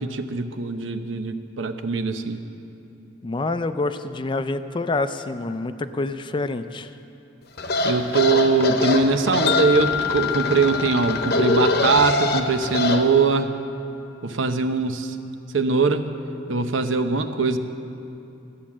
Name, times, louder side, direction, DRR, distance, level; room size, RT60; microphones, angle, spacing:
voice 1, 0.0-2.4 7.8-13.5 14.2-15.2 15.5-16.1 16.5-17.6, right 4 dB, 90° right, 8 dB, 0.8 m, -22 dB
voice 2, 3.2-6.9, left 2 dB, 25° left, 11 dB, 0.4 m, -27 dB
sound 1, 7.6-13.0, left 2 dB, 55° left, 0.9 m, -24 dB
Wind chime, 9.5-13.8, left 13 dB, 90° left, 0.6 m, -30 dB
13.0 x 8.7 x 7.3 m, 2.8 s
head